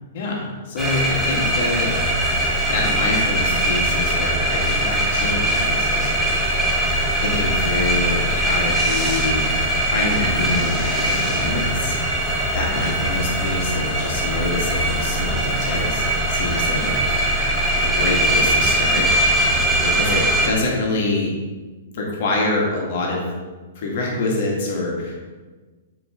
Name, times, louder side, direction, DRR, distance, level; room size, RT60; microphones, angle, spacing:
voice 1, 0.1-1.9 2.7-6.6 7.2-12.0 12.5-16.9 17.4-19.1 19.4-21.3 21.9-23.2 23.8-25.2, left 2 dB, 55° left, -2 dB, 2.0 m, -26 dB
sound 1, 0.8-20.5, right 1 dB, 5° right, 1.6 m, -21 dB
9.1 x 5.0 x 3.8 m, 1.3 s
hypercardioid pair, 115°, 0 cm